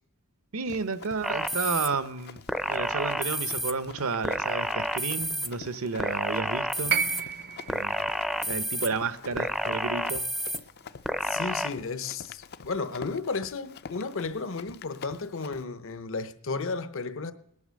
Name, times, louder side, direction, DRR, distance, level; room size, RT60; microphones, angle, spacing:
voice 1, 0.5-2.4 2.7-7.0 7.7-8.0 8.4-10.3, right 4 dB, 75° right, 0.8 m, -31 dB
Run, 0.6-15.6, left 6 dB, 45° left, 0.5 m, -47 dB
sound 1, 1.2-1.9 2.5-3.7 4.2-5.5 6.0-7.2 7.7-8.9 9.4-10.6 11.0-11.7, equal, ahead, 0.5 m, -30 dB
sound 2, 6.9-11.1 12.3-12.4, right 6 dB, 45° right, 0.6 m, -34 dB
voice 2, 11.2-17.3, left 4 dB, 65° left, 0.9 m, -33 dB
18.5 x 11.0 x 6.4 m
head